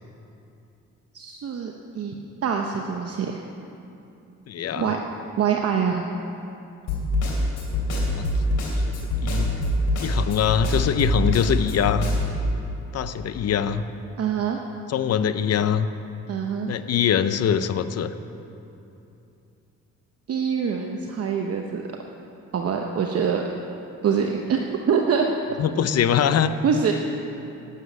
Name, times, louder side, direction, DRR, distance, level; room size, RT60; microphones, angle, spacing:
voice 1, 1.1-2.2 2.4-3.5 4.8-5.0 5.4-6.1 14.2-14.6 16.3-16.7 20.3-21.9 22.5-23.4 24.0-25.3 26.6-26.9, right 7 dB, 50° right, 2 dB, 0.9 m, -24 dB
voice 2, 4.5-4.9 8.2-8.3 9.2-9.5 10.0-12.1 12.9-13.8 14.9-15.9 16.7-18.1 25.6-26.5, left 8 dB, 55° left, 11 dB, 0.7 m, -23 dB
Snare drum, 6.9-12.4, left 1 dB, 80° left, 3.4 m, -25 dB
9.4 x 9.2 x 9.5 m, 2.8 s
cardioid pair, 90°, 30 cm